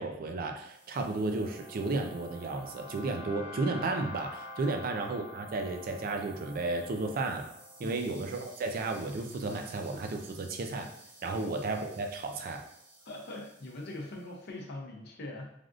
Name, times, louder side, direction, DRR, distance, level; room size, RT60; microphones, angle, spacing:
voice 1, 0.0-7.4 7.8-10.9 11.2-12.6, right 3 dB, 50° right, 4 dB, 0.4 m, -33 dB
sound 1, 0.7-14.1, left 1 dB, 85° right, 1.2 m, -49 dB
voice 2, 13.1-15.5, left 2 dB, 60° left, 1 dB, 0.6 m, -42 dB
3.3 x 2.4 x 2.5 m, 0.77 s
head